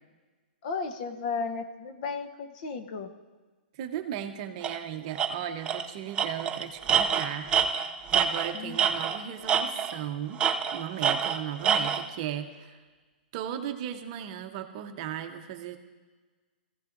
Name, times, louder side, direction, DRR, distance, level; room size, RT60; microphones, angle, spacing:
voice 1, 0.6-3.1 8.5-8.9, left 4 dB, 45° left, 7 dB, 0.8 m, -34 dB
voice 2, 3.7-7.5 7.8-7.9 8.1-10.4 10.7-12.8 13.3-15.8, right 10 dB, 35° right, 7 dB, 0.8 m, -36 dB
Tools, 4.6-4.8 5.2-5.3 5.7-5.9 6.2-9.2 9.5-10.0 10.4-12.0, right 7 dB, 15° right, 0.5 m, -26 dB
20.5 x 15.0 x 2.6 m, 1.3 s
hypercardioid pair, 155°, 6 cm